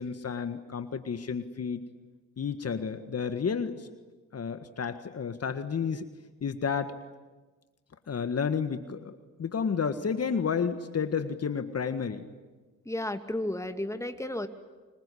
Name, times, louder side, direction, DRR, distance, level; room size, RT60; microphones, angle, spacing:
voice 1, 0.0-1.9 2.4-3.9 4.3-6.1 6.4-7.0 8.1-12.3, left 6 dB, 50° left, 9 dB, 1.7 m, -31 dB
voice 2, 12.9-14.5, left 1 dB, 10° left, 7 dB, 2.6 m, -33 dB
26.0 x 22.0 x 10.0 m, 1.3 s
supercardioid pair, 50°, 32 cm